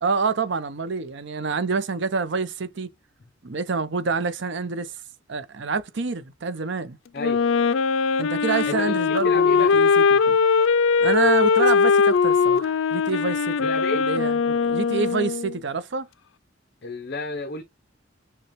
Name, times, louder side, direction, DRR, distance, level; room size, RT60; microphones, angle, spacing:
voice 1, 0.0-2.9 3.4-5.0 5.3-7.0 8.2-10.4 11.0-16.1, right 4 dB, 65° right, 0.7 m, -27 dB
Wind instrument woodwind instrument, 7.2-15.6, left 5 dB, 85° left, 0.4 m, -20 dB
voice 2, 8.7-9.8 13.6-14.1 16.8-17.6, left 3 dB, 55° left, 0.7 m, -31 dB
6.7 x 2.3 x 3.0 m
head